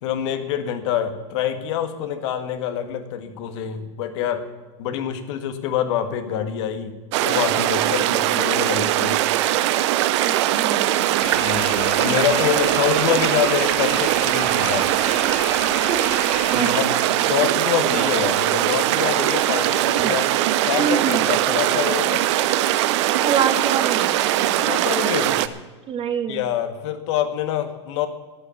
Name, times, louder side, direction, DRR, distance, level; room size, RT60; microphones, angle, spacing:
voice 1, 0.0-4.4 4.8-6.9 7.2-9.2 11.3-14.9 16.5-20.3 20.6-22.2 24.6-25.4 26.3-28.1, left 9 dB, 70° left, 8 dB, 1.8 m, -26 dB
sound 1, 7.1-25.5, right 13 dB, 70° right, 0.8 m, -21 dB
voice 2, 10.2-10.9 15.9-16.0 16.5-16.7 20.0-20.2 20.8-21.3 23.2-24.6 24.8-25.0 25.9-26.4, right 7 dB, 35° right, 9 dB, 1.6 m, -26 dB
sound 2, 11.2-16.8, left 12 dB, 55° left, 1.1 m, -36 dB
13.0 x 9.1 x 8.5 m, 1.3 s
supercardioid pair, 110°, 15 cm